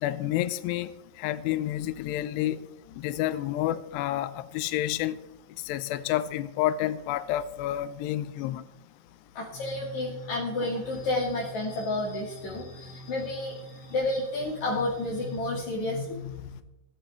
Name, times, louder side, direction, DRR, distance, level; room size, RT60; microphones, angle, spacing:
voice 1, 0.0-0.9 1.2-2.6 3.0-5.2 5.7-8.6, left 13 dB, 90° left, 14 dB, 2.4 m, -29 dB
voice 2, 9.3-13.6 13.9-16.6, left 2 dB, 45° left, -5 dB, 3.2 m, -31 dB
sound 1, 9.5-15.4, right 3 dB, 65° left, 6.6 m, -45 dB
18.5 x 13.0 x 3.5 m, 0.89 s
omnidirectional pair, 5.7 m